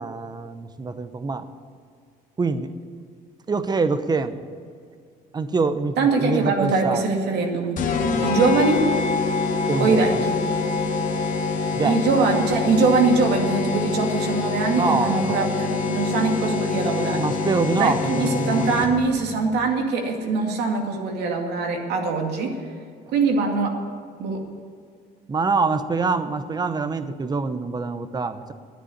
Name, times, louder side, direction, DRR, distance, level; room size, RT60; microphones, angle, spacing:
voice 1, 0.0-1.5 2.4-2.7 3.5-4.4 5.3-7.0 8.1-8.4 9.7-10.2 11.7-12.0 14.8-15.5 17.1-18.9 25.3-28.5, right 4 dB, 25° right, 11 dB, 0.9 m, -25 dB
voice 2, 6.0-7.8 8.2-8.8 9.8-10.4 11.8-17.3 17.7-22.5 23.1-23.8 24.2-24.4, right 4 dB, 80° right, 2 dB, 2.3 m, -22 dB
sound 1, 7.8-19.2, left 4 dB, 50° left, 1.6 m, -25 dB
10.5 x 9.8 x 9.6 m, 2.2 s
cardioid pair, 110°, 17 cm